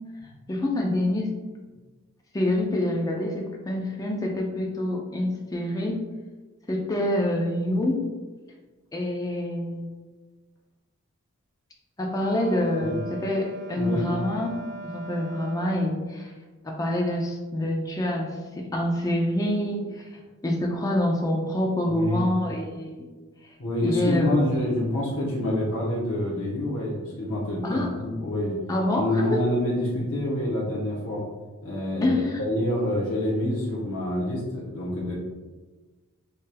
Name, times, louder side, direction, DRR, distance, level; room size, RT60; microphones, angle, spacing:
voice 1, 0.5-1.3 2.3-6.1 6.7-8.1 8.9-9.9 12.0-16.3 16.6-23.1 23.4-23.6 23.8-24.6 27.6-28.1 28.7-29.4 32.0-32.4, left 1 dB, 15° left, 0 dB, 0.4 m, -27 dB
Wind instrument woodwind instrument, 12.2-16.0, right 1 dB, 50° right, 0.4 m, -39 dB
voice 2, 13.7-14.1 21.9-22.3 23.6-28.5 29.0-31.2 31.6-35.1, left 1 dB, 60° left, -5 dB, 0.8 m, -27 dB
4.3 x 3.2 x 2.2 m, 1.3 s
head